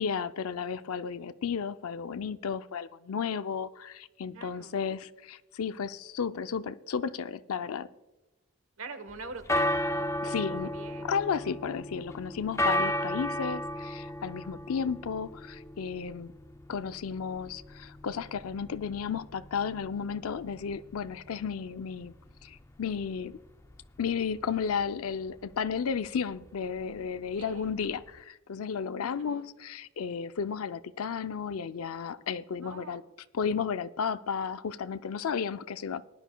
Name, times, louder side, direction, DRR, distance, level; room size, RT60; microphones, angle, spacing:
voice 1, 0.0-7.9 10.2-10.7 11.0-16.3 16.7-22.1 22.4-23.4 24.0-33.0 33.3-36.0, left 6 dB, 90° left, 0.5 m, -33 dB
voice 2, 4.3-4.8 8.8-10.2 10.5-11.2 27.4-27.7 29.0-29.4 32.6-33.0, right 3 dB, 80° right, 1.1 m, -45 dB
sound 1, 9.1-28.2, left 1 dB, 15° left, 0.3 m, -35 dB
19.5 x 11.0 x 2.2 m
head